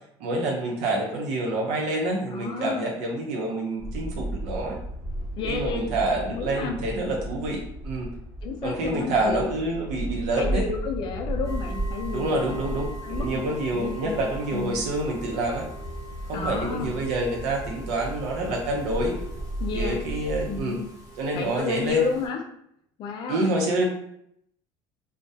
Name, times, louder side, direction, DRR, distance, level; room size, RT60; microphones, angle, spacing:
voice 1, 0.2-4.8 5.5-8.1 8.6-10.6 12.1-15.7 16.3-19.2 19.7-20.8 21.2-22.0 23.3-23.8, right 2 dB, 75° right, -1 dB, 0.5 m, -27 dB
voice 2, 2.3-2.9 5.4-5.9 6.3-6.8 8.4-9.5 10.4-12.6 13.0-13.4 13.7-14.2 14.5-14.8 16.3-16.9 19.6-20.0 20.5-20.8 21.3-22.4 23.0-23.6, left 5 dB, 45° left, 3 dB, 0.4 m, -31 dB
sound 1, 3.8-20.6, right 1 dB, 10° left, 0.7 m, -35 dB
sound 2, 11.4-22.3, right 1 dB, 25° right, 0.7 m, -43 dB
2.3 x 2.1 x 2.6 m, 0.72 s
cardioid pair, 135°, 11 cm